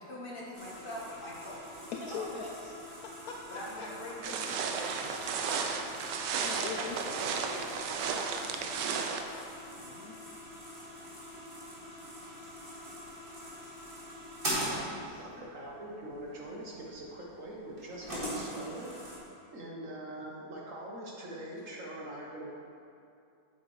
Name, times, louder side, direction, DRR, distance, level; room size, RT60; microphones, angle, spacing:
voice 1, 0.0-2.1 3.5-5.1, left 1 dB, 35° left, -4 dB, 1.2 m, -43 dB
sound 1, 0.5-19.2, equal, 30° right, 1.9 m, -43 dB
voice 2, 1.9-3.9 6.4-7.3 9.8-10.2 14.5-15.5, left 5 dB, 70° left, 1 dB, 0.9 m, -43 dB
sound 2, 4.2-9.2, right 5 dB, 80° right, 1.3 m, -34 dB
voice 3, 6.5-7.6 15.2-19.0 19.5-22.5, right 1 dB, 55° right, -2 dB, 1.2 m, -43 dB
8.7 x 7.9 x 3.2 m, 2.5 s
omnidirectional pair, 1.9 m